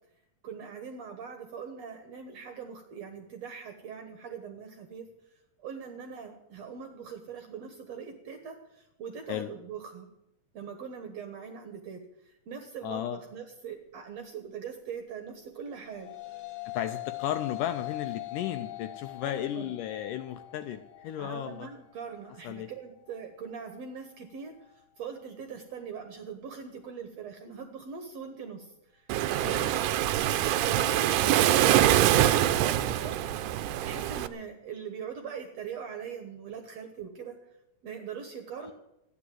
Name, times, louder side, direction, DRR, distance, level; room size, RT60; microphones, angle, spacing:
voice 1, 0.4-5.1 5.6-10.1 10.5-16.1 19.2-19.7 21.2-30.0 30.6-33.2 33.8-37.4 37.8-38.7, right 6 dB, 65° right, 6 dB, 1.7 m, -42 dB
voice 2, 12.8-13.2 16.7-21.7 22.4-22.7 29.4-29.8 38.6-38.7, left 11 dB, 80° left, 9 dB, 2.0 m, -34 dB
sound 1, 15.6-24.8, left 20 dB, 50° left, 2.2 m, -42 dB
Waves surf, 29.1-34.3, right 12 dB, 80° right, 1.9 m, -24 dB
14.0 x 10.0 x 7.6 m, 0.86 s
omnidirectional pair, 4.3 m